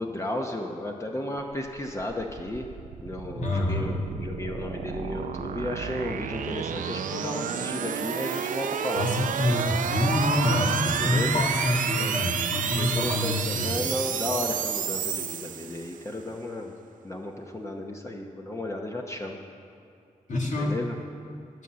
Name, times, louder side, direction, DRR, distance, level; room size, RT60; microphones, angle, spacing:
voice 1, 0.0-2.7 3.0-9.1 10.9-11.4 12.0-12.1 12.7-16.7 17.0-19.4 20.5-20.9, left 1 dB, 20° left, 1 dB, 0.8 m, -33 dB
sound 1, 1.8-16.1, right 8 dB, 90° right, 0.4 m, -31 dB
voice 2, 3.4-3.9 9.0-13.7 20.3-20.8, left 1 dB, 70° left, -2 dB, 2.1 m, -26 dB
12.0 x 5.6 x 7.5 m, 2.5 s
cardioid pair, 80°, 13 cm